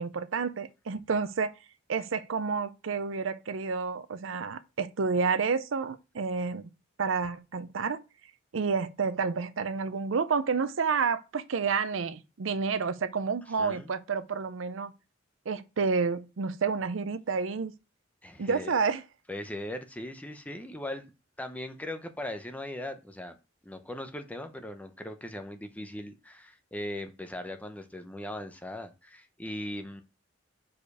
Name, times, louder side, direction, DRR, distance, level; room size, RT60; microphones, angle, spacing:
voice 1, 0.0-1.5 1.9-6.7 7.0-8.0 8.5-14.9 15.5-17.7 18.4-19.0, right 5 dB, 70° right, 0.5 m, -29 dB
voice 2, 13.6-13.9 18.2-18.7 19.3-21.1 21.4-23.4 23.6-30.0, left 1 dB, 10° left, 0.7 m, -39 dB
5.0 x 4.7 x 4.8 m
head